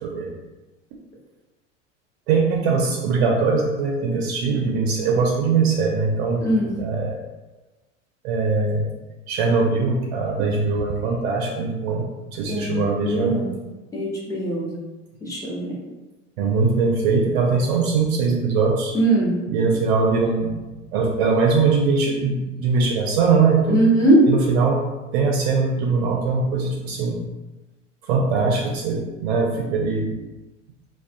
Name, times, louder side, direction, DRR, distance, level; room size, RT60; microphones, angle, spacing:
voice 1, 2.3-6.5 6.8-7.2 8.2-8.9 9.3-13.4 16.4-18.9 19.5-20.6 20.9-23.8 24.3-24.8 25.1-27.2 28.1-30.1, right 4 dB, 55° right, -1 dB, 0.5 m, -21 dB
voice 2, 12.5-13.5 13.9-14.7 15.2-15.7 18.9-19.4 23.7-24.2, right 1 dB, 10° left, -6 dB, 0.7 m, -20 dB
2.4 x 2.2 x 2.5 m, 1.1 s
figure-of-eight pair, 85°, 38 cm